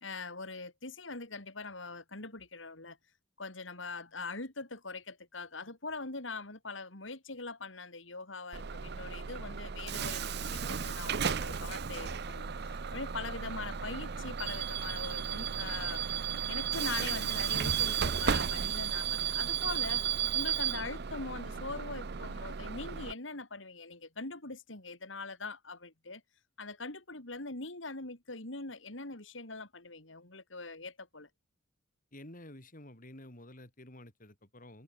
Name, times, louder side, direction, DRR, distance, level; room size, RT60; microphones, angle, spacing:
voice 1, 0.0-3.0 3.4-16.0 16.5-20.0 20.3-26.2 26.6-31.3, left 3 dB, 75° left, 3.9 m, -42 dB
Bus / Alarm, 8.5-23.1, right 7 dB, 60° right, 0.7 m, -34 dB
voice 2, 32.1-34.8, left 1 dB, 45° left, 5.7 m, -51 dB
head